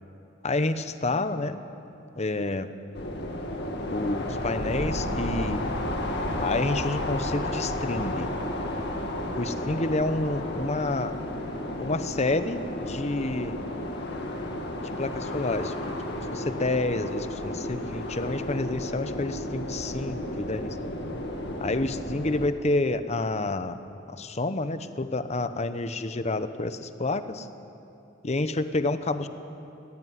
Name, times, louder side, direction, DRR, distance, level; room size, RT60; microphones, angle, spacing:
voice 1, 0.4-1.6 2.2-2.7 3.9-5.7 6.4-8.3 9.4-11.2 11.8-13.6 14.8-16.0 16.3-20.8 21.6-23.8 24.1-27.5 28.2-29.3, left 2 dB, 35° left, 11 dB, 0.8 m, -29 dB
sound 1, 2.9-22.5, left 1 dB, 60° left, 2.0 m, -32 dB
18.5 x 15.0 x 9.5 m, 3.0 s
head